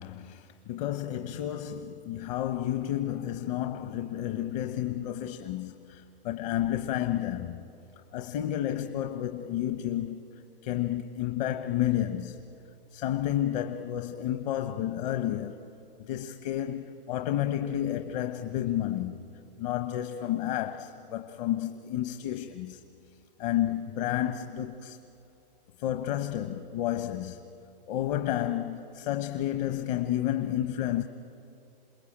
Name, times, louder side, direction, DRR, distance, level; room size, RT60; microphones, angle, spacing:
voice 1, 0.0-7.6 8.1-10.2 10.6-12.4 12.9-15.6 16.0-19.2 19.6-22.8 23.4-25.0 25.8-27.4 27.9-31.0, left 12 dB, 50° left, 1.1 m, -31 dB
28.0 x 20.5 x 8.8 m
hypercardioid pair, 125°, 29 cm